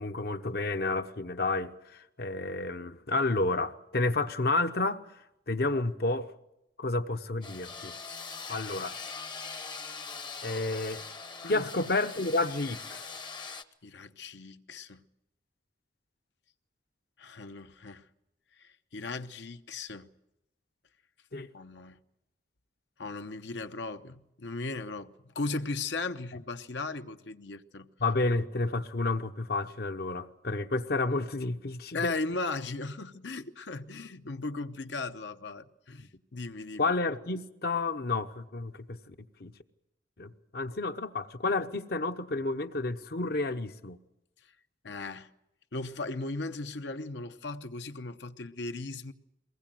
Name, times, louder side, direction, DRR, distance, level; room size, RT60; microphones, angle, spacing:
voice 1, 0.0-5.0 5.5-6.3 6.8-7.9 8.5-8.9 10.4-11.0 11.5-13.0 21.3-21.5 28.0-32.1 36.8-39.1 39.4-39.5 40.2-44.0, left 2 dB, 55° left, 1.0 m, -30 dB
sound 1, 7.4-13.6, left 5 dB, 25° left, 0.8 m, -42 dB
voice 2, 13.8-15.0 17.2-18.1 18.6-20.1 21.5-22.0 23.0-27.9 31.9-36.9 44.8-45.3 45.7-49.1, left 3 dB, 75° left, 1.0 m, -37 dB
22.5 x 20.0 x 7.7 m
head